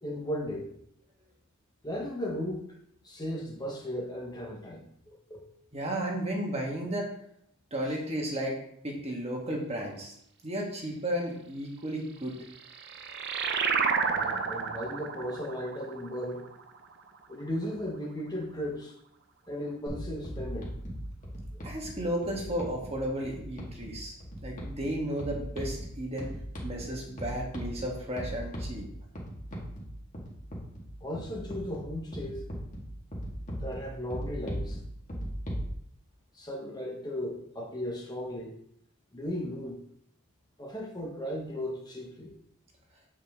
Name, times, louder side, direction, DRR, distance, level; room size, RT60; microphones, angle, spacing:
voice 1, 0.0-0.7 1.8-2.7 3.0-5.4 14.0-16.4 17.3-18.9 19.5-20.7 21.5-21.6 31.0-32.5 33.6-34.8 36.3-38.6 39.1-39.8 40.6-42.3, equal, 20° left, -1 dB, 1.1 m, -36 dB
voice 2, 5.7-7.1 7.7-8.6 8.8-10.1 10.4-12.4 21.6-24.1 24.4-26.4 26.6-28.8, right 1 dB, 30° right, -1 dB, 1.6 m, -33 dB
sound 1, 12.3-17.4, right 5 dB, 50° right, 0.6 m, -31 dB
sound 2, 19.9-35.7, equal, 35° left, 1.9 m, -39 dB
8.0 x 4.9 x 3.6 m, 0.71 s
head